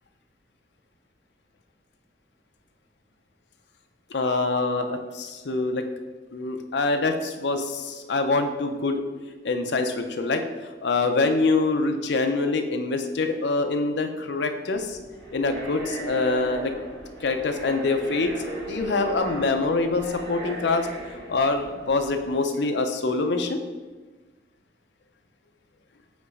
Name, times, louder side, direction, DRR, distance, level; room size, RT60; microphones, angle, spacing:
voice 1, 4.1-5.9 6.3-9.0 9.4-10.5 10.8-15.0 15.3-16.7 17.2-20.9 21.3-23.6, left 3 dB, 75° left, 6 dB, 0.6 m, -25 dB
sound 1, 14.7-22.4, right 1 dB, 60° right, 1.4 m, -37 dB
5.3 x 3.9 x 4.8 m, 1.3 s
head